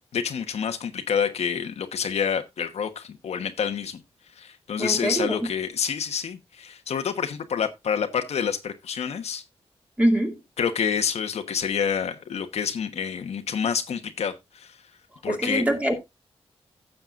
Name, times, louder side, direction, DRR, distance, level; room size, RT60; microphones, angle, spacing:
voice 1, 0.1-4.0 4.4-9.4 10.6-14.8 15.2-15.6, left 7 dB, 80° left, 1.2 m, -28 dB
voice 2, 4.8-5.5 10.0-10.4 15.3-15.9, right 1 dB, 10° right, 2.3 m, -24 dB
15.0 x 6.8 x 2.5 m
wide cardioid pair, 130°, 11 cm